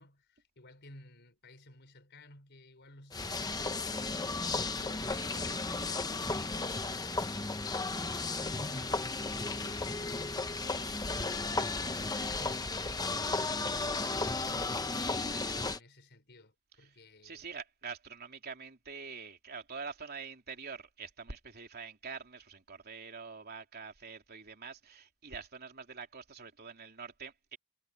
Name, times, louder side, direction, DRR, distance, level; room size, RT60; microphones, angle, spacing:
voice 1, 0.0-17.4, left 2 dB, 50° left, 5.4 m, -56 dB
sound 1, 3.1-15.8, left 3 dB, 15° left, 0.9 m, -34 dB
voice 2, 17.2-27.6, right 5 dB, 45° right, 3.4 m, -45 dB
head